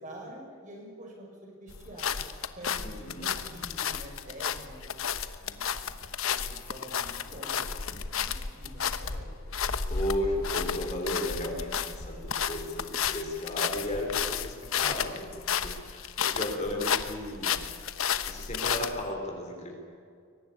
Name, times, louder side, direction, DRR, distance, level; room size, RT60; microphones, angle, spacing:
voice 1, 0.0-2.1 2.5-5.0 5.4-9.3, right 1 dB, 35° right, 0 dB, 6.6 m, -47 dB
sound 1, 1.7-19.1, left 7 dB, 75° left, 1.1 m, -32 dB
voice 2, 2.8-3.3 9.9-17.6 18.3-19.7, left 1 dB, 30° left, 1 dB, 4.0 m, -34 dB
23.0 x 18.5 x 9.7 m, 2.2 s
head